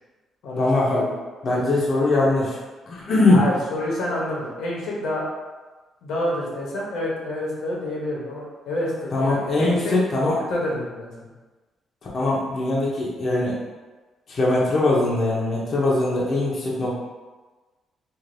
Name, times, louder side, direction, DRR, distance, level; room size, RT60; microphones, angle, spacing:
voice 1, 0.6-1.1 1.4-2.6 2.9-3.4 9.1-10.4 12.1-13.6 14.3-17.0, left 2 dB, 50° left, -5 dB, 0.7 m, -21 dB
voice 2, 3.3-5.2 6.0-11.3, left 1 dB, 80° left, -4 dB, 0.8 m, -28 dB
3.2 x 2.5 x 2.6 m, 1.3 s
cardioid pair, 90°, 0 cm